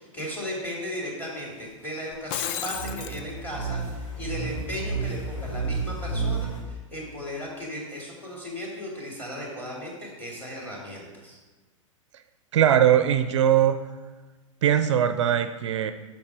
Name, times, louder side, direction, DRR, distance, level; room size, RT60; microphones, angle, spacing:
voice 1, 0.0-11.4, equal, 10° left, -3 dB, 2.6 m, -36 dB
Shatter, 2.1-3.2, left 10 dB, 35° left, 0.4 m, -32 dB
sound 1, 2.7-6.6, right 4 dB, 65° left, 2.4 m, -31 dB
voice 2, 12.5-13.8 14.6-15.9, right 10 dB, 60° right, 9 dB, 0.4 m, -20 dB
7.1 x 6.0 x 4.7 m, 1.2 s
figure-of-eight pair, 95°, 17 cm